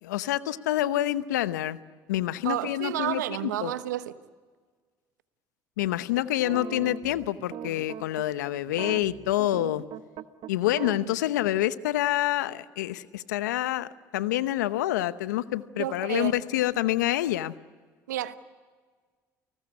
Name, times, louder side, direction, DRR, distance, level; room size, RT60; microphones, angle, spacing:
voice 1, 0.0-1.8 2.1-3.7 5.8-9.8 10.5-17.5, left 14 dB, 85° left, 0.9 m, -27 dB
voice 2, 2.4-4.1 15.7-16.3 18.1-18.4, right 13 dB, 90° right, 1.1 m, -30 dB
sound 1, 6.2-8.2 8.7-11.0, right 10 dB, 60° right, 1.2 m, -39 dB
30.0 x 19.5 x 9.8 m
hypercardioid pair, 65°, 9 cm